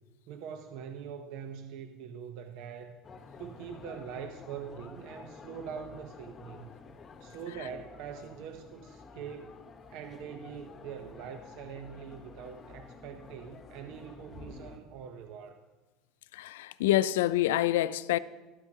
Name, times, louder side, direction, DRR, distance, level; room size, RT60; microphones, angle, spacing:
voice 1, 0.3-3.0 3.4-6.7 7.2-9.6 9.9-15.6, right 7 dB, 70° right, 0.7 m, -43 dB
sound 1, 3.0-14.8, left 4 dB, 30° left, 1.1 m, -50 dB
voice 2, 16.3-18.2, left 14 dB, 90° left, 0.4 m, -27 dB
14.0 x 12.5 x 2.8 m
supercardioid pair, 105°, 0 cm